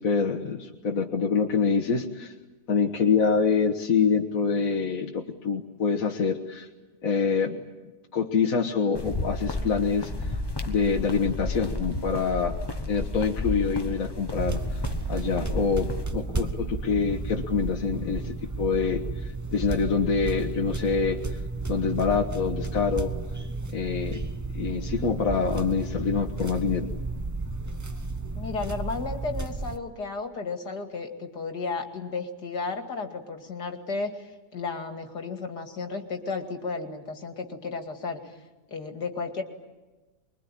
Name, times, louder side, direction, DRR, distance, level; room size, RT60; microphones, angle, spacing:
voice 1, 0.0-2.3 2.7-6.7 7.0-7.6 8.1-10.3 10.7-12.5 12.9-14.6 15.1-21.2 21.7-23.1 23.7-24.2 24.5-26.9, left 5 dB, 55° left, 2 dB, 1.8 m, -26 dB
sound 1, 8.9-16.1, left 2 dB, 15° left, 1.2 m, -32 dB
sound 2, 14.3-29.8, right 3 dB, 20° right, 0.5 m, -33 dB
voice 2, 28.3-38.4 38.7-39.4, left 4 dB, 70° left, 5 dB, 3.0 m, -33 dB
24.5 x 22.5 x 10.0 m, 1.2 s
omnidirectional pair, 1.8 m